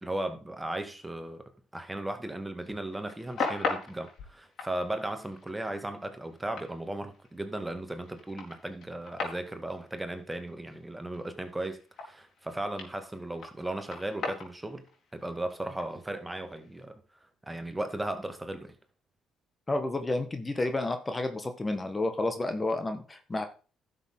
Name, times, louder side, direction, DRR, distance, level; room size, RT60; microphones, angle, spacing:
voice 1, 0.0-14.8 15.1-17.0 17.4-18.8, right 1 dB, 10° right, 2.1 m, -36 dB
sound 1, 2.8-12.5 12.8-16.8, left 4 dB, 65° left, 4.3 m, -38 dB
voice 2, 19.7-23.4, left 2 dB, 25° left, 1.6 m, -30 dB
11.5 x 6.9 x 3.8 m
supercardioid pair, 65°, 0 cm